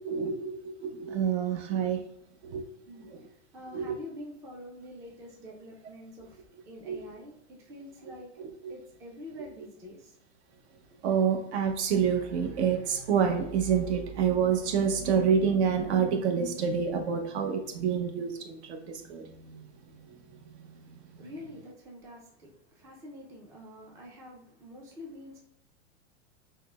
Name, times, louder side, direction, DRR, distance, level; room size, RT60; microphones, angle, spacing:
voice 1, 0.0-2.0 2.4-2.6 3.7-3.9 6.9-7.0 8.4-8.7 11.0-19.6, right 7 dB, 65° right, 0.8 m, -28 dB
voice 2, 3.5-8.3 8.7-10.1 21.2-25.4, left 1 dB, 10° right, 0.3 m, -46 dB
5.5 x 2.1 x 2.2 m
hypercardioid pair, 130°, 37 cm